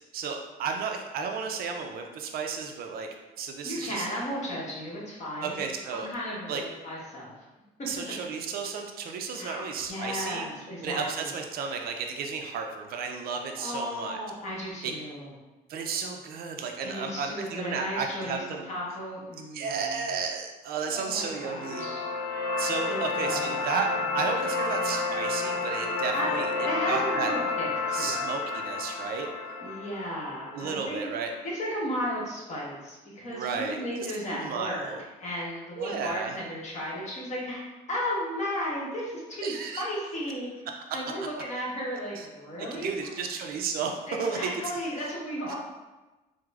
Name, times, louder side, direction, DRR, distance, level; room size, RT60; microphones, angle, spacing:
voice 1, 0.1-3.1 3.4-4.1 5.4-6.1 6.5-6.6 7.9-10.5 10.8-14.2 14.8-14.9 15.7-18.6 19.5-21.9 22.6-23.9 24.1-26.5 26.9-27.3 27.9-29.3 30.5-31.3 33.3-33.8 34.2-35.0 35.8-36.4 39.4-39.9 42.2-42.3 42.7-44.7 45.5-45.6, right 5 dB, 60° right, 3 dB, 0.4 m, -33 dB
voice 2, 3.6-5.6 5.9-7.3 9.4-11.3 13.5-15.3 16.8-20.0 20.8-22.1 22.5-23.7 26.1-28.3 29.6-31.1 31.4-34.9 35.2-40.5 40.9-43.1 44.1-45.6, equal, 45° left, -5 dB, 1.2 m, -35 dB
sound 1, 21.1-31.1, left 3 dB, 70° left, 0.7 m, -31 dB
4.6 x 2.1 x 2.4 m, 1.1 s
cardioid pair, 110°, 17 cm